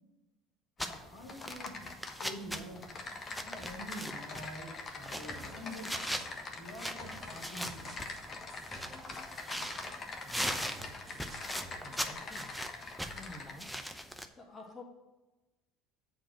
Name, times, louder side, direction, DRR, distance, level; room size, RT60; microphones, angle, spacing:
voice 1, 0.8-1.9 2.2-2.8 3.4-6.0 6.6-8.0, equal, 90° left, -2 dB, 2.4 m, -46 dB
Typing, 0.8-1.0 1.3-2.3 2.8-13.5, left 3 dB, 40° left, 1.3 m, -44 dB
sound 1, 0.8-14.3, equal, ahead, 0.7 m, -41 dB
sound 2, 5.3-12.1, right 2 dB, 25° right, 1.6 m, -53 dB
voice 2, 10.2-10.8 11.8-12.5 13.1-13.7 14.4-14.8, left 2 dB, 25° left, 0 dB, 1.8 m, -50 dB
7.7 x 4.5 x 6.3 m, 1.1 s
supercardioid pair, 85°, 0 cm